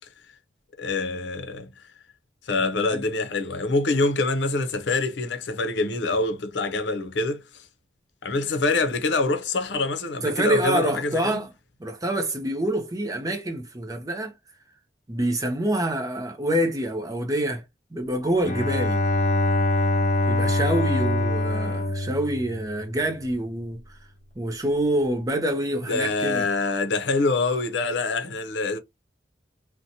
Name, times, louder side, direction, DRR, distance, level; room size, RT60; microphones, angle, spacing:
voice 1, 0.8-1.9 2.4-7.7 8.2-11.4 25.9-28.8, left 3 dB, 80° left, 0.6 m, -25 dB
voice 2, 10.2-11.5 11.8-14.3 15.1-17.6 17.9-19.0 20.3-23.8 24.4-26.5, right 1 dB, 20° right, 0.5 m, -26 dB
Bowed string instrument, 18.4-23.1, left 1 dB, 40° left, 0.6 m, -24 dB
2.7 x 2.1 x 2.7 m
head